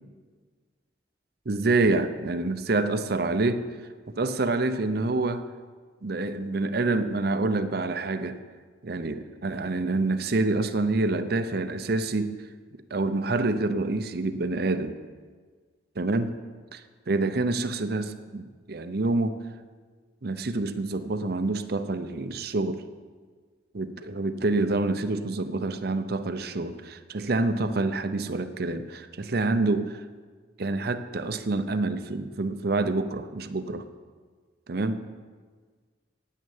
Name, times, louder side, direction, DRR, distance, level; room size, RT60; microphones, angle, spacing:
voice 1, 1.5-3.7 4.1-5.5 6.0-8.4 8.8-12.3 12.9-15.0 16.0-16.3 16.7-19.4 20.2-22.8 23.7-30.0 30.6-33.9 34.7-35.0, right 2 dB, 55° right, 10 dB, 0.7 m, -27 dB
9.5 x 9.3 x 7.2 m, 1.5 s
head